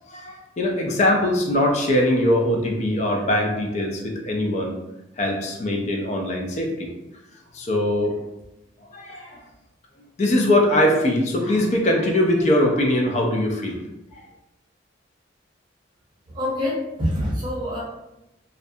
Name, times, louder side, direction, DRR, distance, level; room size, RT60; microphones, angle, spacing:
voice 1, 0.1-4.8 5.2-6.9 7.5-8.1 8.9-9.4 10.2-13.8 14.1-14.2, left 1 dB, 35° left, 1 dB, 0.4 m, -21 dB
voice 2, 16.3-17.8, left 1 dB, 20° right, -6 dB, 0.7 m, -25 dB
2.4 x 2.1 x 2.6 m, 0.92 s
head